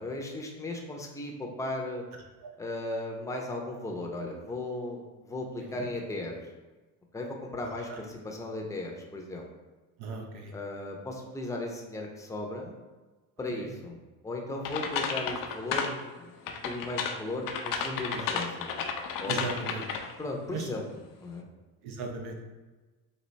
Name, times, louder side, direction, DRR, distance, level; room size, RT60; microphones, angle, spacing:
voice 1, 0.0-2.0 2.6-6.3 7.1-9.5 10.5-12.8 13.4-14.0 14.2-18.7 19.2-19.5 20.2-20.8 21.2-21.4, left 2 dB, 10° left, 0 dB, 0.6 m, -36 dB
voice 2, 10.0-10.5 13.6-13.7 18.2-18.3 19.3-19.8 20.5-20.7 21.8-22.4, right 4 dB, 70° right, 2 dB, 0.8 m, -37 dB
sound 1, 14.6-16.0 16.5-20.2, left 6 dB, 55° left, 0.5 m, -33 dB
4.1 x 2.7 x 3.2 m, 1.2 s
supercardioid pair, 95°, 41 cm